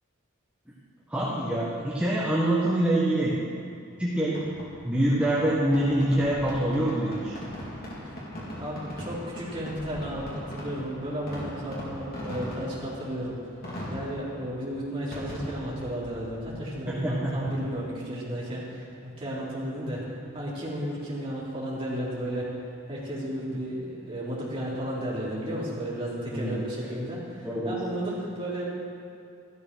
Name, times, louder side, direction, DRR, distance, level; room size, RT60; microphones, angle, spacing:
voice 1, 1.1-3.4 4.0-4.5 4.8-7.3 16.9-17.7 23.5-23.6 26.3-26.6 27.4-27.8, right 1 dB, 5° right, -7 dB, 1.4 m, -25 dB
Fireworks, 4.4-17.9, equal, 45° left, 3.6 m, -40 dB
voice 2, 8.6-13.4 13.9-20.1 20.3-22.5 22.9-28.6, equal, 25° right, -7 dB, 3.8 m, -33 dB
13.5 x 13.0 x 6.3 m, 2.5 s
head